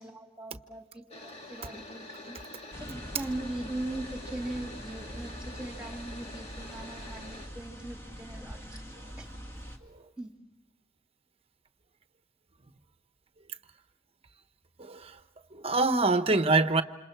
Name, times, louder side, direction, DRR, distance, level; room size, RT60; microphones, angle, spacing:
voice 1, 0.0-2.4 2.8-8.8 9.2-9.3 10.2-10.3, right 1 dB, 5° right, 3.0 m, -40 dB
sound 1, 1.1-7.5, left 2 dB, 35° left, 2.7 m, -46 dB
sound 2, 2.7-9.8, equal, 15° left, 2.2 m, -43 dB
voice 2, 14.8-15.2 15.5-16.8, right 3 dB, 30° right, 1.1 m, -25 dB
28.5 x 27.5 x 4.7 m
head